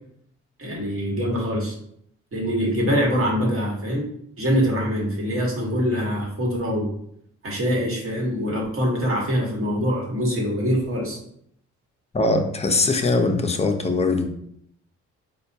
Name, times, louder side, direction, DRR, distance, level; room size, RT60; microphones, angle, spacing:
voice 1, 0.6-1.8 2.3-4.1 4.4-6.9 7.4-11.2, equal, 45° right, -2 dB, 1.2 m, -24 dB
voice 2, 12.1-14.3, left 3 dB, 20° left, 5 dB, 0.5 m, -21 dB
4.1 x 2.3 x 2.7 m, 0.69 s
cardioid pair, 90°, 30 cm